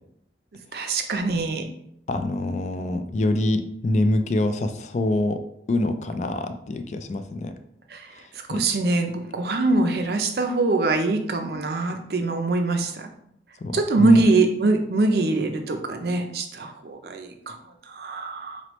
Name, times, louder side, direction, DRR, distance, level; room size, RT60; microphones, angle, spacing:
voice 1, 0.7-1.7 7.9-8.1 8.5-13.1 13.7-17.5 17.9-18.6, right 3 dB, 60° right, 5 dB, 0.5 m, -23 dB
voice 2, 2.1-5.4 5.7-7.5 8.5-8.7 13.6-14.2, left 2 dB, 40° left, 8 dB, 0.3 m, -25 dB
4.1 x 3.1 x 3.0 m, 0.73 s
head